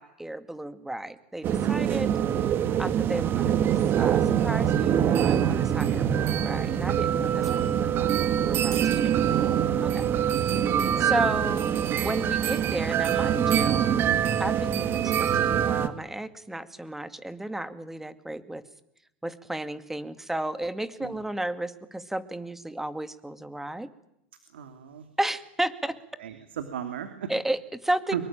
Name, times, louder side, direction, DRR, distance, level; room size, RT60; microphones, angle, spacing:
voice 1, 0.0-2.1 2.8-3.4 4.0-9.2 9.8-10.0 11.0-11.7 12.0-13.9 14.4-18.6 19.2-23.9 25.2-26.0 27.3-28.2, right 1 dB, 5° right, 12 dB, 2.2 m, -33 dB
sound 1, 1.4-15.9, right 9 dB, 40° right, 2.2 m, -24 dB
voice 2, 3.3-3.7 9.8-10.3 21.0-21.2 24.5-25.1 26.2-27.3 28.1-28.2, right 9 dB, 80° right, 8 dB, 2.9 m, -36 dB
25.0 x 23.0 x 9.0 m, 0.80 s
hypercardioid pair, 105°, 6 cm